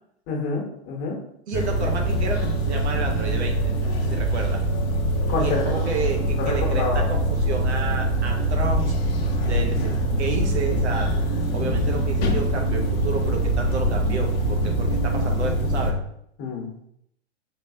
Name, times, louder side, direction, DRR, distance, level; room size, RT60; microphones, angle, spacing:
voice 1, 0.3-1.1 5.3-5.7 6.4-7.1 16.4-16.7, left 4 dB, 40° left, -1 dB, 1.2 m, -27 dB
sound 1, 1.5-15.9, right 1 dB, 60° left, 0.8 m, -23 dB
voice 2, 1.5-4.6 5.4-8.9 9.4-11.1 11.5-16.0, right 4 dB, 75° right, 2 dB, 1.0 m, -31 dB
4.0 x 3.1 x 2.7 m, 0.71 s
hypercardioid pair, 105°, 34 cm